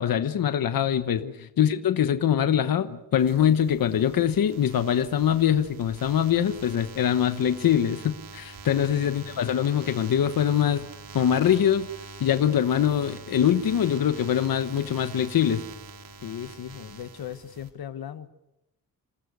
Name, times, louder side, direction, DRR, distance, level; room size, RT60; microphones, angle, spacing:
voice 1, 0.0-1.2 1.6-10.8 11.1-11.9 12.2-15.6, left 9 dB, 70° left, 9 dB, 1.2 m, -23 dB
sound 1, 3.2-17.7, right 4 dB, 70° right, 3.3 m, -45 dB
voice 2, 16.2-18.3, left 9 dB, 90° left, 10 dB, 1.4 m, -38 dB
28.5 x 19.0 x 6.8 m, 0.88 s
wide cardioid pair, 145°, 36 cm